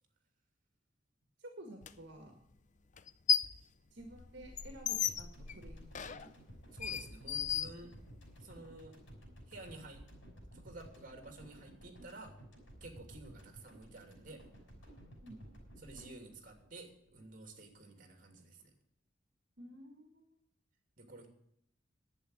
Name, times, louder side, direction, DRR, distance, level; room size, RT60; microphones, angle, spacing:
voice 1, 1.4-2.4 3.9-6.3 15.2-15.4 19.6-20.3, right 1 dB, 65° right, 3 dB, 2.0 m, -52 dB
sound 1, 1.8-1.9 3.0-3.6 4.0-8.4, left 8 dB, 40° left, 0.6 m, -35 dB
sound 2, 5.0-17.5, equal, 90° left, 5.9 m, -55 dB
voice 2, 6.7-8.0 8.4-9.0 9.5-10.0 10.5-12.3 12.8-14.4 15.8-18.7 21.0-21.3, right 2 dB, 50° right, 5 dB, 2.8 m, -52 dB
11.0 x 8.5 x 7.9 m, 0.74 s
head